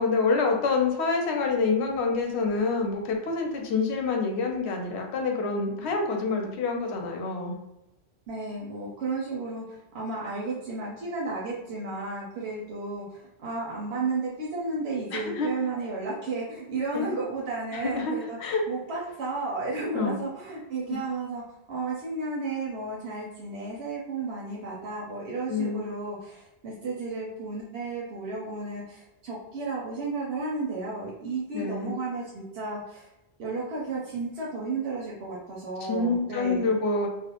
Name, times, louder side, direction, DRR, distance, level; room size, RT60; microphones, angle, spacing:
voice 1, 0.0-7.5 15.1-15.5 16.9-17.0 17.7-18.6 19.9-20.2 25.5-25.8 31.5-32.0 35.8-37.1, left 4 dB, 90° left, 2 dB, 0.8 m, -27 dB
voice 2, 8.3-18.4 18.7-21.4 21.7-33.1 33.4-36.8, right 3 dB, 90° right, -4 dB, 0.9 m, -33 dB
2.4 x 2.0 x 2.8 m, 0.91 s
omnidirectional pair, 1.1 m